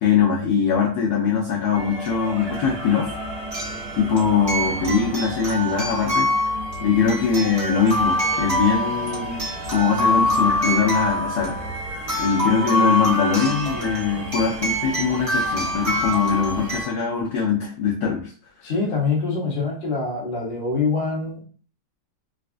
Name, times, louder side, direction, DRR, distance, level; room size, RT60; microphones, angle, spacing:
voice 1, 0.0-3.1 4.0-6.3 6.8-11.6 12.2-18.3, left 6 dB, 80° left, -2 dB, 0.9 m, -22 dB
sound 1, 1.7-16.8, right 1 dB, 60° right, 1.6 m, -35 dB
sound 2, 2.1-2.2 3.5-16.9, left 1 dB, 35° right, 1.1 m, -25 dB
voice 2, 18.6-21.4, left 4 dB, 40° left, -4 dB, 0.7 m, -24 dB
4.0 x 2.4 x 2.5 m, 0.42 s
omnidirectional pair, 2.4 m